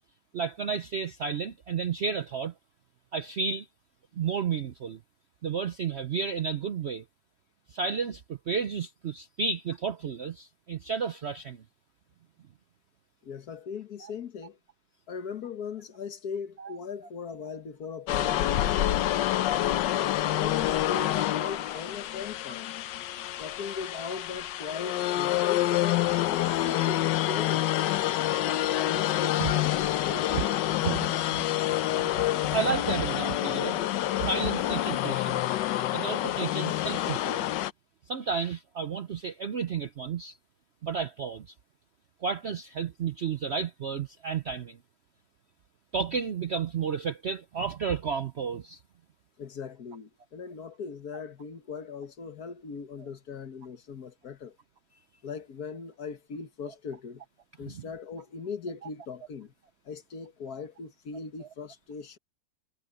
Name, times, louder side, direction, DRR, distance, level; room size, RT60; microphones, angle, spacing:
voice 1, 0.3-2.5 3.1-3.7 4.2-5.0 5.4-7.0 7.7-11.6 16.6-16.7 23.1-23.4 27.6-27.7 29.4-29.5 30.3-30.5 30.8-31.4 32.0-32.1 32.5-33.8 34.2-35.6 35.9-37.5 38.1-40.4 40.8-41.5 42.2-44.8 45.9-48.8 57.7-57.8, right 6 dB, 60° right, 0.7 m, -32 dB
voice 2, 13.2-14.6 15.1-19.3 19.8-22.7 23.4-27.8 28.7-30.4 49.4-54.6 55.2-57.2 57.6-59.5 59.9-62.2, left 5 dB, 60° left, 1.8 m, -39 dB
sound 1, 18.1-37.7, left 13 dB, 80° left, 1.3 m, -27 dB
omnidirectional pair, 1.9 m